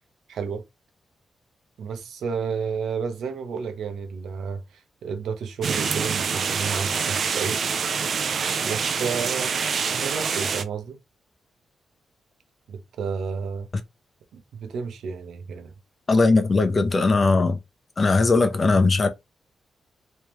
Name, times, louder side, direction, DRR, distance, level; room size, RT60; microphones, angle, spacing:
voice 1, 0.3-0.6 1.8-7.6 8.6-11.0 12.7-13.7 14.3-15.7, right 6 dB, 90° right, 0.9 m, -31 dB
sound 1, 5.6-10.6, right 6 dB, 60° right, 0.5 m, -26 dB
voice 2, 16.1-17.6 18.0-19.1, left 3 dB, 35° left, 0.8 m, -19 dB
3.4 x 3.2 x 3.0 m
cardioid pair, 110°, 0 cm